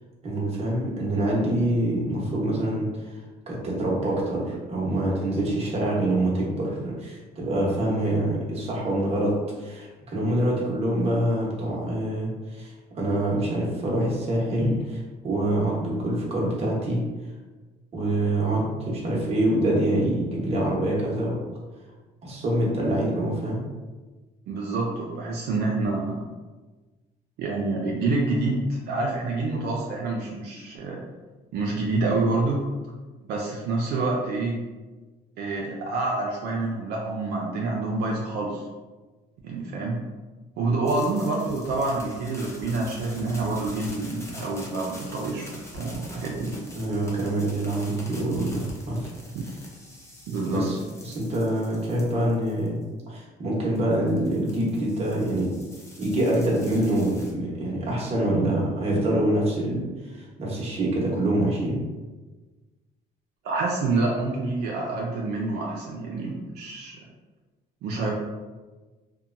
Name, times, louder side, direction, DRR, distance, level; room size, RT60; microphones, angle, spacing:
voice 1, 0.2-3.1 3.5-9.3 9.6-17.0 17.9-21.4 22.2-23.6 46.4-49.1 50.5-52.8 53.1-55.5 56.0-61.8, right 1 dB, 35° right, -4 dB, 0.9 m, -25 dB
voice 2, 24.5-26.3 27.4-31.0 31.5-32.6 33.2-34.6 35.4-38.6 39.4-40.0 40.6-46.5 49.3-49.4 50.3-50.7 63.4-67.0 67.8-68.1, right 3 dB, 75° right, -2 dB, 0.5 m, -27 dB
sound 1, 40.9-52.8 53.8-57.3, left 1 dB, 15° left, 0.5 m, -45 dB
2.8 x 2.2 x 2.5 m, 1.3 s
cardioid pair, 110°, 17 cm